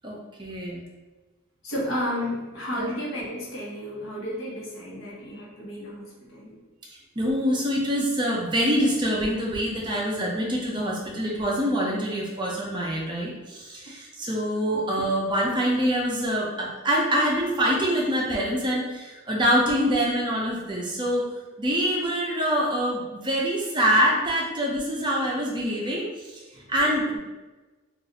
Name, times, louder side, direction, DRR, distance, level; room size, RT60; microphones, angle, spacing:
voice 1, 0.0-0.9 2.8-2.9 7.2-21.3 21.6-26.4 26.7-27.2, equal, 20° right, -3 dB, 0.5 m, -25 dB
voice 2, 1.6-6.6 26.5-26.7, equal, 75° left, -4 dB, 1.0 m, -32 dB
2.5 x 2.4 x 4.0 m, 1.2 s
head